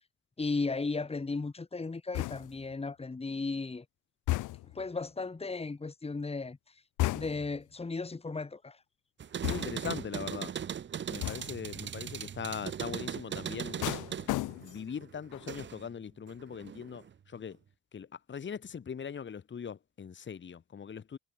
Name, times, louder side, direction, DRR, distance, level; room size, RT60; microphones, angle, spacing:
voice 1, 0.4-3.9 4.7-6.6 7.1-8.8, left 3 dB, 20° left, 2.1 m, -35 dB
sound 1, 2.1-2.7 4.3-4.9 7.0-7.6 9.4-10.0 11.2-11.7 13.8-14.9 15.3-15.7, left 17 dB, 85° left, 0.9 m, -34 dB
sound 2, 9.2-15.9 16.3-17.1, right 8 dB, 40° right, 0.7 m, -39 dB
voice 2, 9.5-10.5 11.1-13.9 14.6-17.6 17.9-21.2, left 7 dB, 40° left, 1.6 m, -40 dB
cardioid pair, 90°, 30 cm